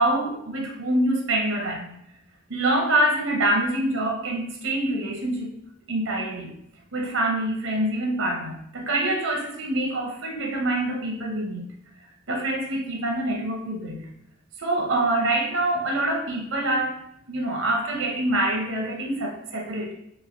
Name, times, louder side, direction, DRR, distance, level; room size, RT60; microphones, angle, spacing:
voice 1, 0.0-2.0 2.5-5.5 5.9-6.6 6.9-11.7 12.3-14.1 14.6-17.0 17.3-19.9, right 1 dB, 80° right, 1 dB, 0.7 m, -25 dB
3.1 x 3.0 x 2.5 m, 0.76 s
head